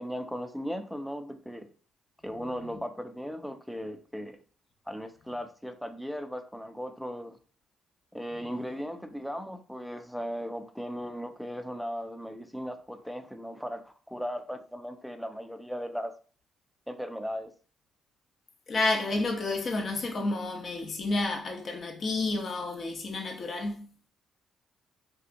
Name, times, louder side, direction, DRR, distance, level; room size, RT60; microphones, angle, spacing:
voice 1, 0.0-1.7 2.2-4.4 4.9-7.4 8.1-16.1 16.9-17.5, equal, ahead, 0.4 m, -37 dB
voice 2, 18.7-23.9, left 2 dB, 45° left, 0.7 m, -30 dB
3.4 x 2.7 x 2.5 m
cardioid pair, 90°, 0 cm